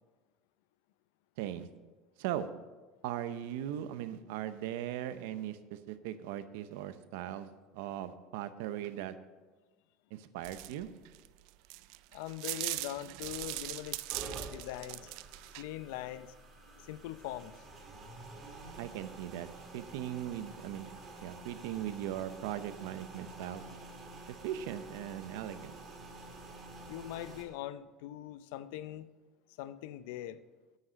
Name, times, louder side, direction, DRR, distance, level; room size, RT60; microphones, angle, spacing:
voice 1, 1.4-1.7 2.2-2.5 3.0-7.5 7.7-9.1 10.1-10.9 18.8-20.9 21.2-23.6 24.3-25.8, right 11 dB, 85° right, 12 dB, 0.7 m, -39 dB
sound 1, 10.4-15.6, right 20 dB, 65° right, 0.3 m, -40 dB
voice 2, 12.1-15.1 15.5-16.3 16.8-17.6 26.9-29.1 29.6-30.4, left 13 dB, 80° left, 15 dB, 0.5 m, -42 dB
sound 2, 13.2-27.4, right 2 dB, 25° right, 1.8 m, -49 dB
9.4 x 6.4 x 7.4 m, 1.3 s
cardioid pair, 160°, 0 cm